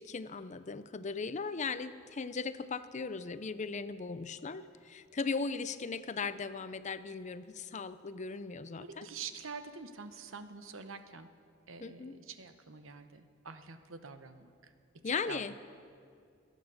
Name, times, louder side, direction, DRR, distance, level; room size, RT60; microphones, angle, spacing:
voice 1, 0.0-9.1 11.8-12.2 15.0-15.5, left 4 dB, 35° left, 13 dB, 0.5 m, -38 dB
voice 2, 8.7-11.3 11.7-14.7 15.3-15.4, right 5 dB, 80° right, 9 dB, 1.0 m, -46 dB
21.5 x 9.2 x 6.9 m, 2.3 s
head